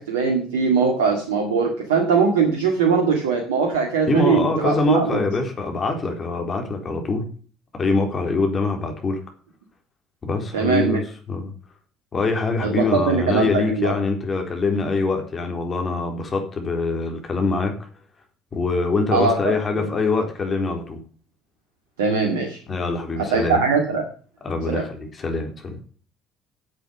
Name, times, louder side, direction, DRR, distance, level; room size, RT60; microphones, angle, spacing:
voice 1, 0.0-5.2 10.5-11.0 12.6-13.9 19.1-19.5 22.0-22.6 23.3-24.0 24.7-24.8, right 5 dB, 85° right, 2 dB, 2.0 m, -21 dB
voice 2, 4.1-7.2 7.7-9.2 10.2-11.0 11.3-11.5 12.1-17.7 18.5-21.0 22.7-23.6 24.4-25.8, left 3 dB, 35° left, 3 dB, 4.0 m, -24 dB
8.9 x 7.9 x 8.6 m, 0.41 s
hypercardioid pair, 60°, 0 cm